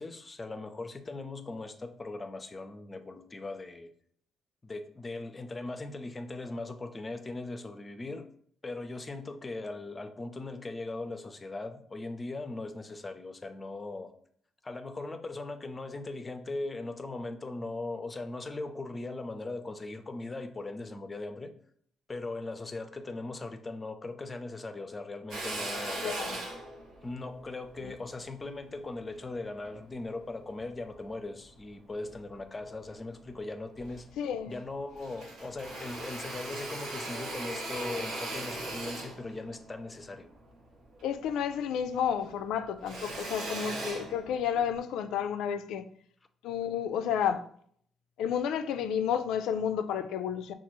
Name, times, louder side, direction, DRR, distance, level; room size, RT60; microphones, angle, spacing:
voice 1, 0.0-3.9 4.6-8.3 8.6-14.1 14.6-21.5 22.1-26.0 27.0-34.1 34.5-40.3, left 2 dB, 25° left, 0.5 m, -39 dB
Drill, 25.3-29.8 30.4-31.6 32.0-33.0 33.3-33.4 33.7-34.7 34.9-41.6 41.9-44.8, right 2 dB, 75° right, 1.0 m, -40 dB
voice 2, 26.0-26.4 27.8-27.9 34.2-34.5 41.0-45.8 46.4-47.4 48.2-50.5, left 8 dB, 85° left, 0.3 m, -31 dB
5.9 x 2.4 x 3.0 m
cardioid pair, 90°, 0 cm